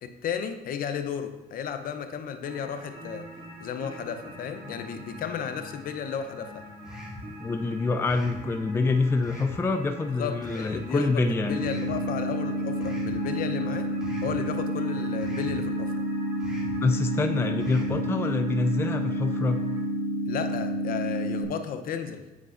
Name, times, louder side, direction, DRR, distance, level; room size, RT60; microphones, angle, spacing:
voice 1, 0.0-3.2 3.6-6.6 10.2-11.2 11.5-13.9 14.2-15.9 20.3-22.2, left 7 dB, 60° left, 8 dB, 0.6 m, -34 dB
sound 1, 2.4-19.9, equal, 30° right, 1.7 m, -45 dB
sound 2, 6.8-7.3 8.0-8.4 9.2-9.6 10.4-10.8 11.6-12.0 12.8-13.2 14.0-14.4 15.2-15.6 16.4-16.8 17.6-18.0, equal, 5° right, 2.1 m, -42 dB
voice 2, 7.4-11.6 16.7-19.6, left 3 dB, 15° left, 6 dB, 0.4 m, -26 dB
sound 3, 11.4-21.4, equal, 90° left, 0.9 m, -29 dB
8.2 x 5.1 x 2.5 m, 1.1 s
cardioid pair, 110°, 17 cm